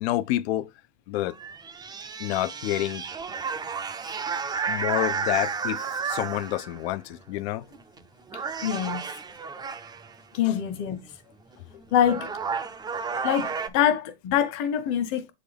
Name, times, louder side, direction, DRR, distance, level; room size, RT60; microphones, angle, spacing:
voice 1, 0.0-0.7 1.1-1.3 2.2-3.1 4.7-7.7 10.4-10.6, left 15 dB, 65° left, 0.6 m, -28 dB
sound 1, 1.3-6.9 7.7-8.0 8.3-10.1 11.5-11.6 12.0-13.7, right 5 dB, 10° right, 0.5 m, -32 dB
voice 2, 8.6-9.0 10.3-11.0 11.9-12.3 13.2-15.3, left 10 dB, 50° left, 1.3 m, -24 dB
7.5 x 3.9 x 3.3 m
supercardioid pair, 120°, 34 cm